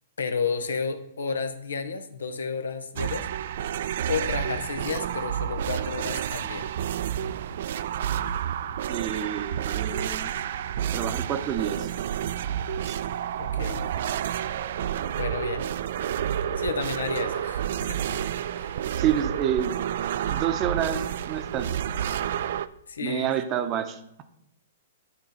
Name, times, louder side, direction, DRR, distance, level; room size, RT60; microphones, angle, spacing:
voice 1, 0.2-3.3 4.1-6.7 13.4-13.8 15.2-15.7 16.6-18.2 18.5-18.8 22.9-23.3, left 5 dB, 75° left, 10 dB, 0.8 m, -32 dB
sound 1, 3.0-22.7, right 10 dB, 60° right, 0.4 m, -30 dB
voice 2, 8.9-10.3 10.9-11.9 12.9-13.0 19.0-19.8 20.3-21.7 23.0-24.2, right 10 dB, 30° right, 9 dB, 0.8 m, -28 dB
9.7 x 3.9 x 5.7 m, 0.81 s
hypercardioid pair, 115°, 0 cm